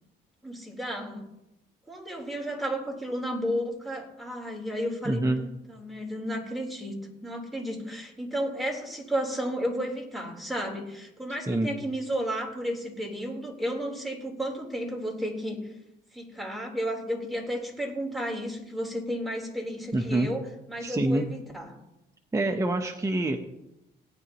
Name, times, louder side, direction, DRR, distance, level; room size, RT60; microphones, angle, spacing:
voice 1, 0.4-1.2 1.9-15.6 16.1-21.8, equal, ahead, -1 dB, 3.8 m, -33 dB
voice 2, 5.0-5.4 11.5-11.7 19.9-20.3 20.8-21.3 22.3-23.4, right 1 dB, 15° right, 3 dB, 0.9 m, -26 dB
18.0 x 9.5 x 3.0 m, 0.89 s
cardioid pair, 90°, 20 cm